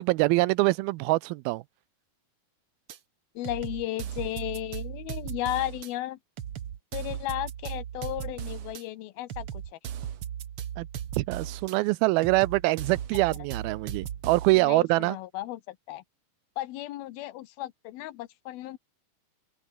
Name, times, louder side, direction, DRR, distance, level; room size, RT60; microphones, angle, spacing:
voice 1, 0.0-1.6 10.8-10.9 11.2-15.2, right 21 dB, 85° right, 2.3 m, -24 dB
sound 1, 2.9-3.0 3.4-5.9 6.4-8.8 9.3-11.8 12.2-14.6, right 9 dB, 60° right, 1.5 m, -37 dB
voice 2, 3.4-6.2 6.9-9.5 14.6-16.0 16.6-18.8, left 15 dB, 75° left, 2.7 m, -34 dB
open air
omnidirectional pair, 4.6 m